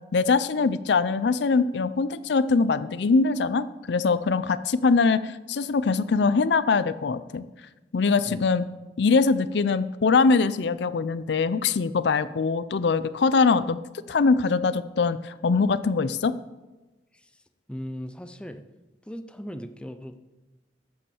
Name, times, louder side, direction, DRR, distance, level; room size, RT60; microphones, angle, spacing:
voice 1, 0.1-7.4 7.9-8.6 9.0-13.8 14.1-16.3, left 4 dB, 70° left, 14 dB, 0.5 m, -22 dB
voice 2, 17.7-18.6 19.1-20.2, equal, 5° left, 9 dB, 0.5 m, -38 dB
14.0 x 5.5 x 7.0 m, 1.1 s
head